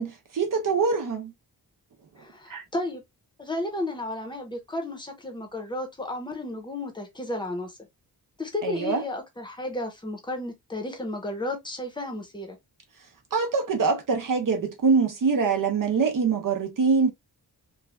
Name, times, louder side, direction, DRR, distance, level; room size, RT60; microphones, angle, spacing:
voice 1, 0.0-1.3 2.5-2.6 8.6-9.0 13.3-17.1, right 5 dB, 55° right, 0.6 m, -24 dB
voice 2, 2.2-3.0 3.4-7.8 8.4-12.6, left 2 dB, 10° left, 0.8 m, -33 dB
3.2 x 2.2 x 2.2 m
wide cardioid pair, 130°, 38 cm